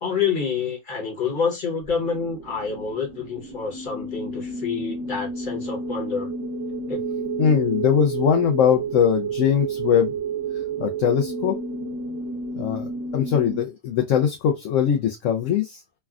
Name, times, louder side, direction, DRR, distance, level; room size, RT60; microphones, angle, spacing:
voice 1, 0.0-6.3 6.9-7.1, left 6 dB, 35° left, 1.1 m, -27 dB
sound 1, 1.9-13.6, right 4 dB, 35° right, 1.2 m, -31 dB
voice 2, 7.4-10.1 10.8-11.6 12.6-15.8, left 8 dB, 65° left, 0.9 m, -21 dB
3.3 x 2.2 x 2.3 m
omnidirectional pair, 1.5 m